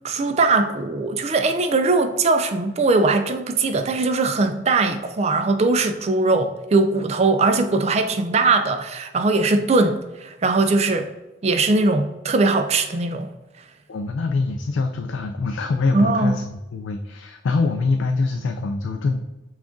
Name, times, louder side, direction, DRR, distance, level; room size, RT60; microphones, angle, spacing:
voice 1, 0.0-11.1 11.4-13.3 15.9-16.3, right 3 dB, 35° right, 0.4 m, -20 dB
voice 2, 13.9-19.3, left 3 dB, 80° left, 0.4 m, -24 dB
5.8 x 2.4 x 3.8 m
head